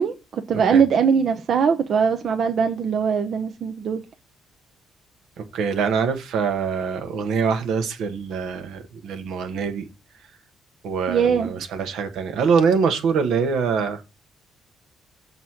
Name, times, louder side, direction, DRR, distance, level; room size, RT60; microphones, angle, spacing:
voice 1, 0.0-4.0 11.1-11.5, right 6 dB, 60° right, 0.7 m, -21 dB
voice 2, 5.4-9.9 10.8-14.0, right 5 dB, 80° right, 1.3 m, -24 dB
6.4 x 4.0 x 5.8 m
cardioid pair, 100°, 0 cm